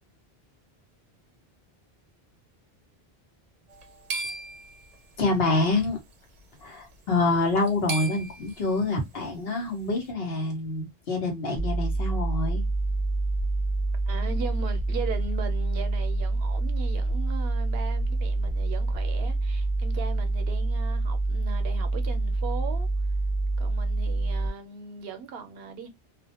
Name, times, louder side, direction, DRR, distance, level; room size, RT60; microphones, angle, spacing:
sound 1, 3.7-5.4 6.4-6.6 6.9-7.0 7.5-8.7, right 3 dB, 50° right, 0.5 m, -36 dB
voice 1, 5.2-6.0 6.6-12.6, left 2 dB, 70° left, 1.1 m, -26 dB
sound 2, 11.6-24.5, right 2 dB, 50° left, 0.7 m, -27 dB
voice 2, 14.1-22.9 23.6-25.9, right 5 dB, 75° right, 0.8 m, -38 dB
2.4 x 2.1 x 2.7 m
omnidirectional pair, 1.1 m